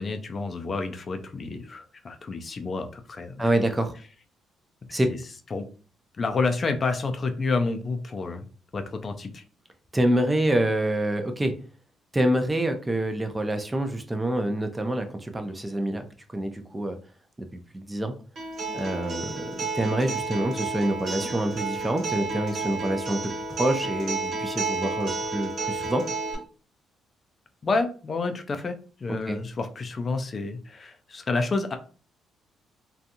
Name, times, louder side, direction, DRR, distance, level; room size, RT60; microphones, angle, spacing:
voice 1, 0.0-3.4 4.9-5.2 5.5-5.7 6.2-8.4 8.7-9.4 27.6-28.7 29.0-31.8, left 3 dB, 40° left, 7 dB, 0.4 m, -29 dB
voice 2, 3.4-4.0 4.9-5.1 9.9-11.5 12.1-16.1 16.3-17.0 17.4-17.5 17.7-18.1 18.7-26.0 29.3-29.4, right 1 dB, 15° right, 6 dB, 0.5 m, -26 dB
Acoustic guitar, 18.4-26.3, right 3 dB, 60° right, 1.3 m, -31 dB
2.7 x 2.3 x 2.6 m, 0.37 s
cardioid pair, 90°, 0 cm